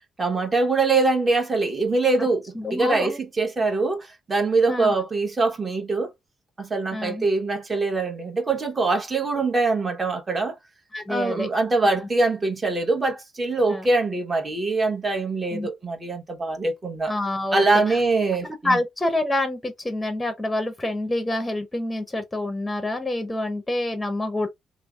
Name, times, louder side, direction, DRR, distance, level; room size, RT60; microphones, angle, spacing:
voice 1, 0.2-6.1 6.6-10.6 11.1-17.1 17.5-18.8, right 3 dB, 25° right, 1.1 m, -23 dB
voice 2, 2.5-3.2 4.7-4.9 6.9-7.3 10.9-11.5 13.7-13.9 15.5-15.7 17.1-18.0 18.6-24.5, left 1 dB, 10° left, 0.7 m, -27 dB
3.1 x 2.0 x 2.3 m
cardioid pair, 90°, 0 cm